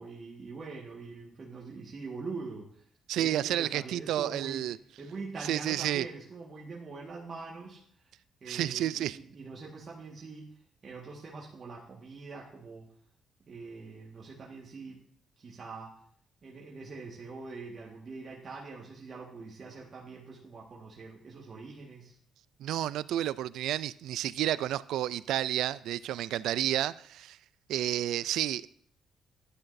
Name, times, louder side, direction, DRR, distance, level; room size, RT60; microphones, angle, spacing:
voice 1, 0.0-2.8 3.1-4.6 5.0-8.1 8.4-10.5 10.8-12.9 13.4-15.0 15.4-15.9 16.4-22.2, right 4 dB, 40° right, 1.6 m, -43 dB
voice 2, 3.1-4.8 5.4-6.1 8.5-9.2 22.6-27.4 27.7-28.7, right 12 dB, 85° right, 0.3 m, -31 dB
11.5 x 9.9 x 2.7 m
cardioid pair, 90°, 0 cm